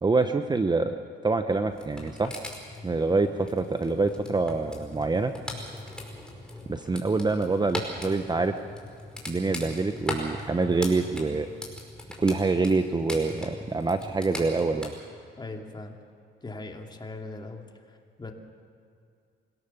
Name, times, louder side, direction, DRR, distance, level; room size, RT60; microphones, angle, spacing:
voice 1, 0.0-2.4 2.8-5.3 6.7-8.5 9.3-11.5 12.2-14.9, right 3 dB, 20° right, 8 dB, 1.0 m, -26 dB
sound 1, 1.7-14.9, left 1 dB, 5° left, 5.0 m, -40 dB
voice 2, 15.4-15.9 16.4-17.6 18.2-18.3, left 2 dB, 20° left, 2 dB, 2.6 m, -39 dB
25.0 x 17.0 x 7.2 m, 2.4 s
cardioid pair, 90°, 20 cm